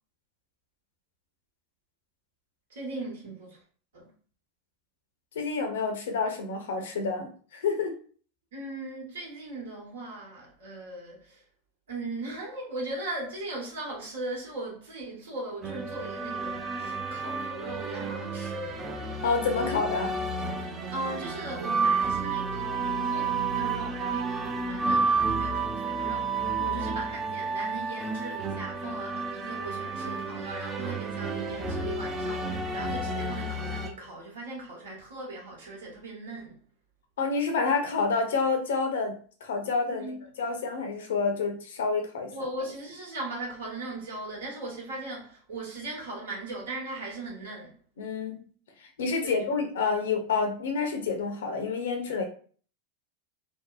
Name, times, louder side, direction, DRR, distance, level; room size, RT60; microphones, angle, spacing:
voice 1, 2.7-3.6 3.9-4.1 8.5-11.4 11.9-18.9 20.6-36.6 39.9-40.2 42.3-47.8 49.2-49.6, right 2 dB, 75° right, 1.1 m, -38 dB
voice 2, 5.3-8.0 19.2-20.2 26.6-26.8 37.2-40.1 40.4-42.3 48.0-48.4 48.8-52.2, left 4 dB, 75° left, 0.6 m, -28 dB
sound 1, 15.6-33.9, right 3 dB, 25° right, 0.4 m, -31 dB
2.6 x 2.0 x 2.3 m
hypercardioid pair, 90°, 0 cm